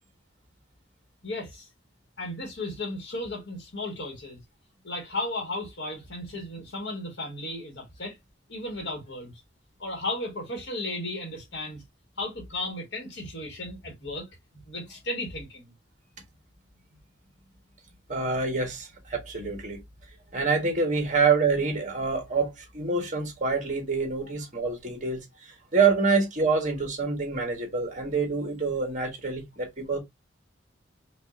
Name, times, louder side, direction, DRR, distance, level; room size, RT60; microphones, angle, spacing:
voice 1, 1.2-1.7 2.2-4.4 4.8-8.2 8.5-9.4 9.8-11.8 12.2-14.3 14.5-15.7, left 2 dB, 70° left, 1.6 m, -35 dB
voice 2, 18.1-19.8 20.3-30.0, right 4 dB, 40° right, 1.5 m, -26 dB
5.2 x 2.6 x 2.5 m
head